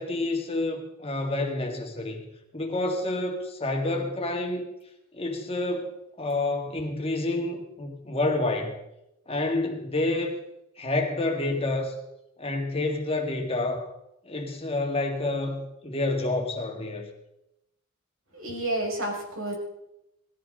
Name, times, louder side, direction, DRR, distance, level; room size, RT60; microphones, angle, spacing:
voice 1, 0.0-4.6 5.1-8.8 9.3-10.4 10.8-12.0 12.4-13.9 14.2-17.1, left 2 dB, 30° left, 2 dB, 1.9 m, -29 dB
voice 2, 18.3-19.5, right 1 dB, 75° right, 0 dB, 5.4 m, -30 dB
19.5 x 14.5 x 3.8 m, 0.87 s
head